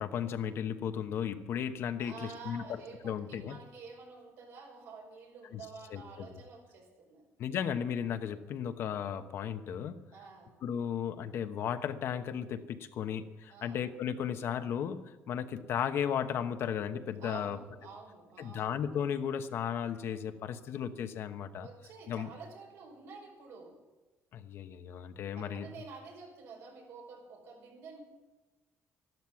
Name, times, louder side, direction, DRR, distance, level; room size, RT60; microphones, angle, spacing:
voice 1, 0.0-3.6 5.5-5.6 5.9-6.3 7.4-10.0 10.6-17.6 18.4-21.7 22.1-22.3 24.3-25.7, left 8 dB, 60° left, 9 dB, 1.0 m, -35 dB
voice 2, 2.0-7.3 10.1-10.5 13.5-13.8 17.2-18.7 21.6-23.8 25.3-28.0, right 4 dB, 75° right, 1 dB, 5.3 m, -49 dB
14.0 x 12.0 x 7.2 m, 1.2 s
cardioid pair, 150°, 5 cm